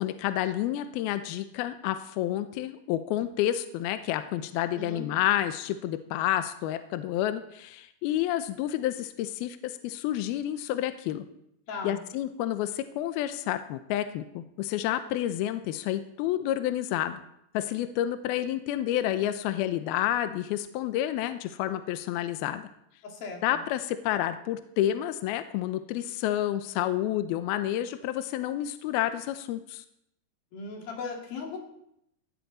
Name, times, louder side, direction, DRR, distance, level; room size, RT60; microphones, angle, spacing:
voice 1, 0.0-11.2 11.8-17.2 17.5-22.7 23.4-29.8, left 12 dB, 80° left, 10 dB, 2.3 m, -29 dB
voice 2, 4.7-5.1 11.7-12.0 23.0-23.6 30.5-31.6, left 4 dB, 60° left, 0 dB, 4.3 m, -38 dB
17.5 x 12.5 x 4.2 m, 0.76 s
omnidirectional pair, 5.1 m